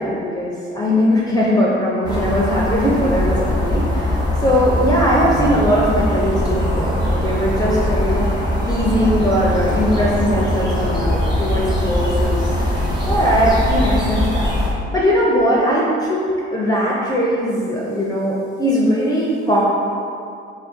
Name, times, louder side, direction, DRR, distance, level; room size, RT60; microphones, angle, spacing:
voice 1, 0.0-8.3 8.6-12.7 13.0-14.5 14.9-19.6, equal, 10° left, -6 dB, 0.5 m, -19 dB
sound 1, 2.0-14.7, left 1 dB, 15° right, 1.0 m, -21 dB
2.4 x 2.3 x 3.5 m, 2.4 s
hypercardioid pair, 45°, 32 cm